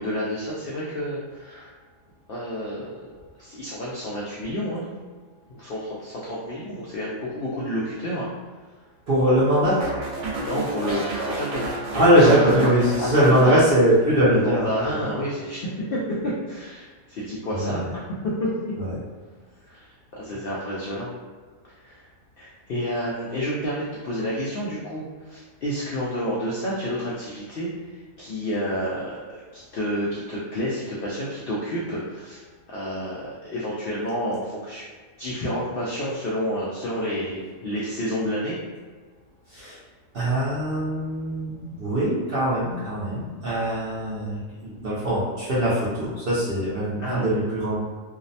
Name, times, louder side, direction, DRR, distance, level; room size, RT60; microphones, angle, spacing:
voice 1, 0.0-1.7 2.3-3.1 3.4-4.9 5.5-8.3 10.4-11.7 12.2-12.5 13.0-13.5 14.2-15.6 15.9-17.8 18.2-18.5 19.7-21.1 21.6-22.0 22.4-34.8 35.2-38.6 47.0-47.3, equal, 80° left, -6 dB, 0.5 m, -29 dB
voice 2, 9.1-9.9 11.9-15.0 17.5-17.9 18.8-18.9 39.5-39.8 40.1-47.8, right 1 dB, 60° right, -8 dB, 0.6 m, -21 dB
sound 1, 9.8-14.3 14.5-14.9, right 2 dB, 80° right, 1.0 m, -32 dB
2.6 x 2.0 x 2.6 m, 1.5 s
omnidirectional pair, 1.5 m